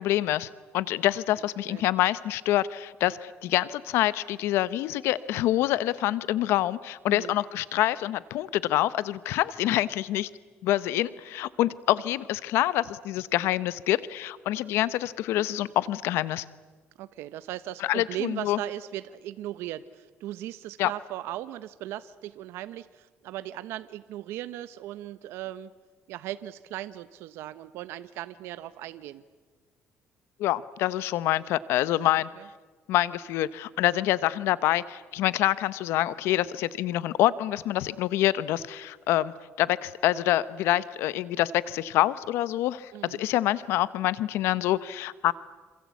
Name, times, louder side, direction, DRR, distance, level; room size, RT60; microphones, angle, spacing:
voice 1, 0.0-10.3 10.6-16.4 17.8-18.6 20.8-20.9 30.4-32.3 32.9-45.3, left 14 dB, 85° left, 17 dB, 0.8 m, -26 dB
voice 2, 17.0-25.7 26.1-29.2 32.4-32.5 42.9-43.2, right 13 dB, 85° right, 13 dB, 0.8 m, -38 dB
27.0 x 26.5 x 8.4 m, 1.4 s
cardioid pair, 125°, 4 cm